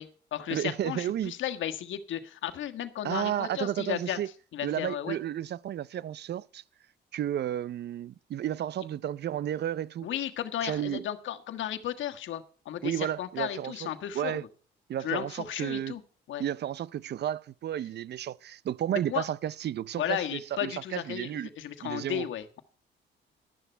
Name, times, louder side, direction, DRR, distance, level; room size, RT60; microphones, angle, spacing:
voice 1, 0.0-4.2 4.5-5.2 10.0-14.4 15.0-16.0 16.3-16.4 19.1-19.2 20.0-22.6, left 11 dB, 75° left, 1.5 m, -34 dB
voice 2, 0.5-1.3 3.0-4.3 4.6-6.6 7.1-10.1 10.6-11.0 12.8-13.9 14.1-14.4 14.9-16.0 16.4-21.5 21.8-22.3, right 11 dB, 60° right, 0.6 m, -32 dB
12.5 x 11.5 x 4.5 m
cardioid pair, 90°, 20 cm